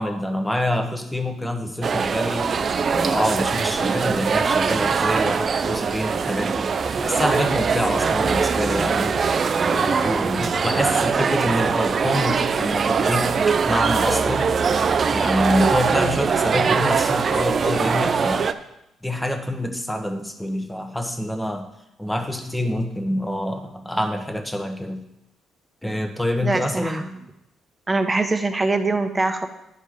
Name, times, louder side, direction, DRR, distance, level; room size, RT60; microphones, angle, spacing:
voice 1, 0.0-2.5 2.9-6.7 7.0-9.2 9.6-14.6 15.1-18.5 19.0-21.7 22.0-25.0 25.8-27.0, left 1 dB, 5° left, 5 dB, 1.1 m, -26 dB
sound 1, 1.8-18.5, right 5 dB, 45° right, 0.5 m, -22 dB
voice 2, 26.4-27.1 27.9-29.5, right 3 dB, 20° right, 7 dB, 1.0 m, -23 dB
10.5 x 5.4 x 5.1 m, 0.86 s
cardioid pair, 90°, 0 cm